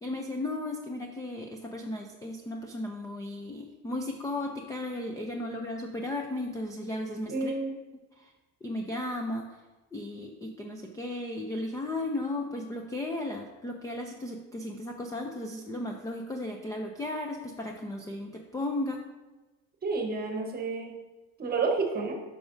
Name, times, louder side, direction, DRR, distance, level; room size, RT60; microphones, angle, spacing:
voice 1, 0.0-7.5 8.2-8.3 8.6-9.6 9.9-19.0, left 1 dB, 10° left, 2 dB, 0.4 m, -35 dB
voice 2, 7.3-7.7 19.8-21.0 21.4-22.2, right 4 dB, 25° right, 3 dB, 1.0 m, -30 dB
10.0 x 6.2 x 2.6 m, 1.1 s
cardioid pair, 150°, 38 cm